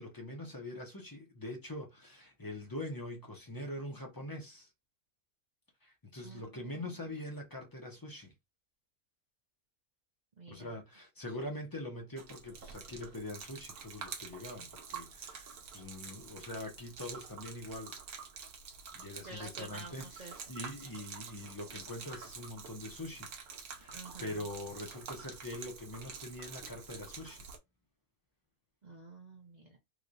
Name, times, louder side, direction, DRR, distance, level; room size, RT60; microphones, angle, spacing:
voice 1, 0.0-4.7 5.8-8.3 10.5-18.0 18.9-23.3 23.7-27.5, left 1 dB, 30° left, 0.3 m, -43 dB
voice 2, 6.2-6.9 10.4-10.8 19.2-20.3 23.9-24.5 28.8-29.8, right 2 dB, 55° right, 0.5 m, -50 dB
Gurgling / Liquid, 12.2-27.6, right 6 dB, 80° right, 1.2 m, -48 dB
3.2 x 2.9 x 2.6 m
omnidirectional pair, 1.6 m